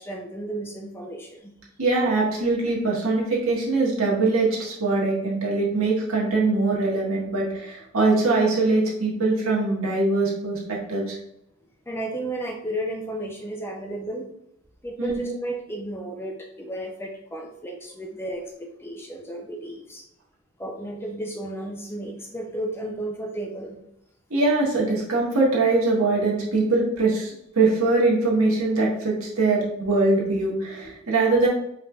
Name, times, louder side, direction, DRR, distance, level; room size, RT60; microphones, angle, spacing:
voice 1, 0.0-1.5 11.9-14.3 14.8-20.0 20.6-23.8, right 1 dB, 10° left, 2 dB, 0.4 m, -33 dB
voice 2, 1.8-11.2 15.0-15.3 24.3-31.5, right 3 dB, 75° right, -4 dB, 1.4 m, -22 dB
4.7 x 3.3 x 2.3 m, 0.77 s
head